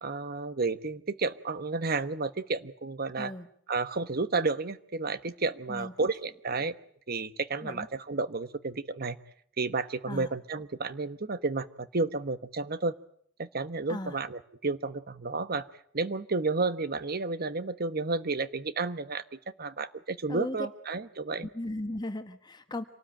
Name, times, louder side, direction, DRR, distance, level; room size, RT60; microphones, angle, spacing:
voice 1, 0.0-3.3 3.7-6.7 7.1-9.2 9.6-12.9 13.4-15.7 15.9-19.2 19.6-21.5, right 3 dB, 50° right, 12 dB, 1.1 m, -31 dB
voice 2, 3.2-3.5 5.7-5.9 7.6-7.9 10.1-10.3 13.9-14.2 20.3-20.6 21.5-22.8, left 1 dB, 20° left, 8 dB, 1.3 m, -36 dB
26.5 x 18.5 x 8.9 m, 0.65 s
head